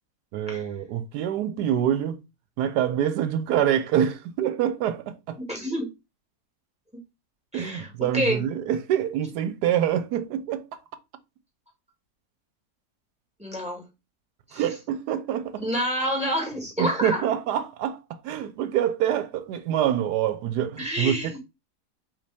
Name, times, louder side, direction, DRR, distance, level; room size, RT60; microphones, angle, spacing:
voice 1, 0.3-2.2 2.6-5.4 7.5-10.6 14.5-15.7 16.8-18.0 18.2-21.4, right 10 dB, 85° right, 1.2 m, -26 dB
voice 2, 5.4-5.9 7.5-8.4 13.4-13.8 14.5-14.6 15.6-17.2 20.8-21.4, equal, 5° right, 1.6 m, -28 dB
5.1 x 2.8 x 3.4 m
omnidirectional pair, 1.7 m